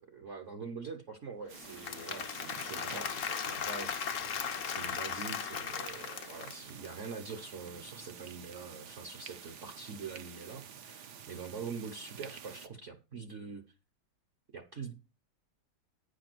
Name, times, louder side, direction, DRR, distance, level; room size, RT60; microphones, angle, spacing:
voice 1, 0.1-4.3 4.6-13.6 14.5-14.9, right 5 dB, 50° right, 1.1 m, -44 dB
Applause / Crowd, 1.5-6.9, left 7 dB, 55° left, 0.9 m, -37 dB
sound 1, 1.5-12.7, right 8 dB, 65° right, 1.4 m, -50 dB
9.7 x 5.2 x 6.0 m
omnidirectional pair, 2.1 m